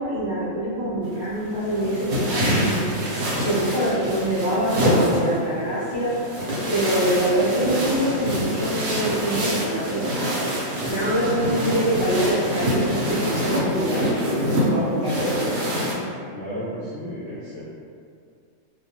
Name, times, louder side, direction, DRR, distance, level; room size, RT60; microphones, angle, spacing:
voice 1, 0.0-2.9 3.4-6.1 6.7-10.3 10.9-14.0 14.5-15.5, right 1 dB, 45° right, -12 dB, 0.3 m, -25 dB
sound 1, 1.0-15.9, equal, 65° right, 0.7 m, -25 dB
voice 2, 16.3-17.6, equal, 50° left, -13 dB, 0.4 m, -33 dB
2.3 x 2.2 x 2.8 m, 2.3 s
omnidirectional pair, 1.5 m